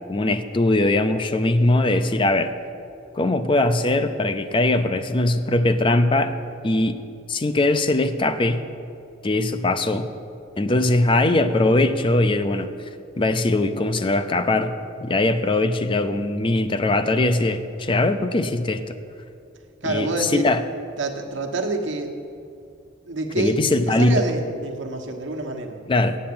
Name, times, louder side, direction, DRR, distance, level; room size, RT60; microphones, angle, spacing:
voice 1, 0.1-2.5 3.1-6.3 6.6-7.0 7.3-8.6 9.2-10.1 10.6-12.7 13.2-14.7 15.0-18.8 19.9-20.6 23.4-24.2 25.9-26.2, left 2 dB, 25° left, 10 dB, 0.5 m, -21 dB
voice 2, 19.8-20.4 21.0-22.2 23.1-25.8, right 2 dB, 75° right, 3 dB, 1.2 m, -27 dB
8.6 x 7.4 x 8.7 m, 2.6 s
head